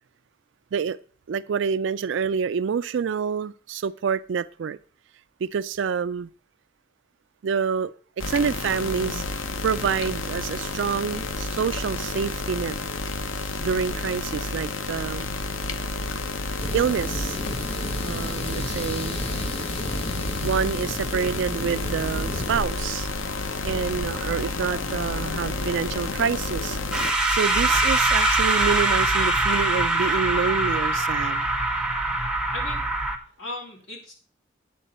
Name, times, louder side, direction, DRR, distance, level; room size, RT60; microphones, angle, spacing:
voice 1, 1.3-4.8 5.4-6.3 7.4-9.2 9.6-12.8 13.6-15.3 16.7-17.4 18.0-19.2 20.4-23.1 23.6-31.5, right 6 dB, 65° right, 0.4 m, -27 dB
sound 1, 8.2-27.1, left 3 dB, 90° left, 0.8 m, -30 dB
sound 2, 16.6-22.6, left 1 dB, 30° left, 0.9 m, -32 dB
voice 2, 23.8-24.1 27.6-27.8 32.5-32.9 33.4-34.1, left 2 dB, 75° left, 4.0 m, -38 dB
sound 3, 26.9-33.2, right 2 dB, 5° right, 1.0 m, -23 dB
9.3 x 8.4 x 4.2 m
head